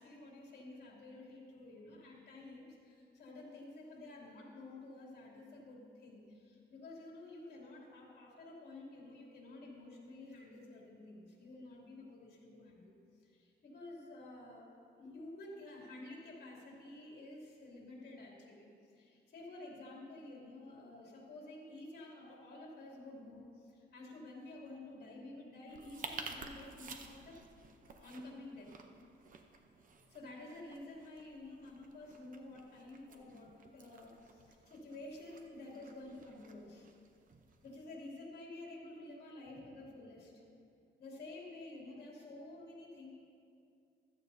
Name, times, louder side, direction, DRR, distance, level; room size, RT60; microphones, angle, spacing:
voice 1, 0.0-12.9 13.3-14.7 15.0-27.4 28.0-28.7 30.1-36.9 37.6-40.3 41.0-43.1, left 2 dB, 60° left, -3 dB, 2.7 m, -51 dB
sound 1, 25.7-37.8, right 4 dB, 45° right, 0.8 m, -53 dB
15.5 x 13.0 x 2.7 m, 2.4 s
wide cardioid pair, 175°, 19 cm